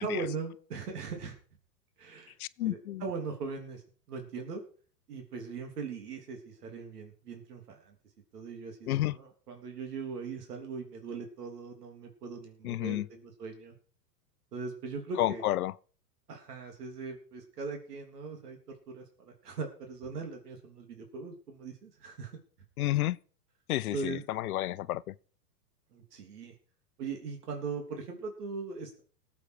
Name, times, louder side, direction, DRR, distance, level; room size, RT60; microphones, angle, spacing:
voice 1, 0.0-1.4 2.0-3.8 4.1-4.6 5.1-8.0 8.3-13.7 14.5-15.4 16.3-18.6 18.9-22.4 23.9-24.2 25.9-26.5 27.0-29.0, right 4 dB, 75° right, 3.5 m, -40 dB
voice 2, 2.4-3.0 8.9-9.2 12.6-13.1 15.2-15.7 22.8-23.2 23.7-25.1, left 15 dB, 65° left, 0.7 m, -31 dB
19.0 x 8.3 x 4.9 m
hypercardioid pair, 130°, 47 cm